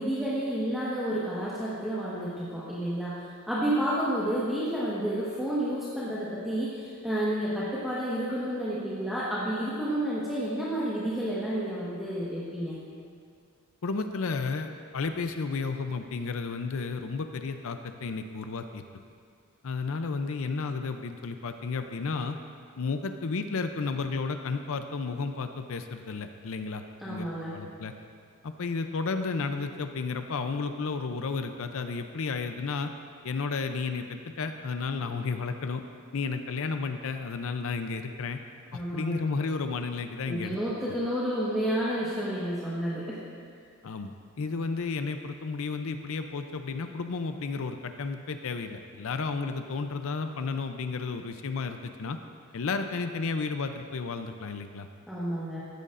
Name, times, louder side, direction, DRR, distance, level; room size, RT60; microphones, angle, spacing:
voice 1, 0.0-12.8 27.0-27.6 38.7-39.2 40.3-43.2 55.1-55.6, right 1 dB, ahead, -10 dB, 1.3 m, -30 dB
voice 2, 13.8-18.8 19.6-22.4 22.8-27.9 28.4-32.9 33.2-35.8 36.1-38.4 38.7-40.6 43.8-52.2 52.5-54.9, left 4 dB, 65° left, 7 dB, 0.5 m, -32 dB
14.5 x 10.5 x 2.5 m, 2.2 s
head